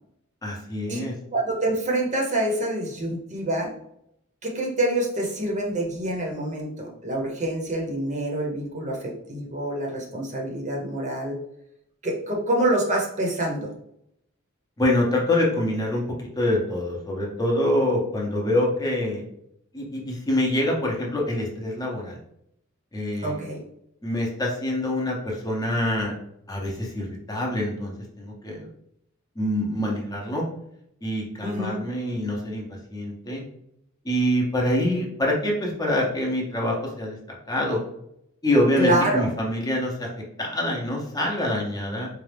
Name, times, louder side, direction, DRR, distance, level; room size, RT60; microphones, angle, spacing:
voice 1, 0.4-1.1 14.8-16.0 16.4-19.2 19.7-22.2 22.9-23.4 24.0-26.1 26.5-28.7 29.4-30.5 31.0-32.6 32.9-33.4 34.0-37.2 37.5-37.8 38.4-40.1 40.4-42.1, left 1 dB, 20° left, -2 dB, 0.7 m, -25 dB
voice 2, 1.3-3.7 4.4-11.4 12.0-13.7 23.2-23.6 31.4-31.8 38.8-39.3, right 1 dB, 35° right, 0 dB, 0.8 m, -26 dB
4.1 x 2.4 x 3.3 m, 0.75 s
head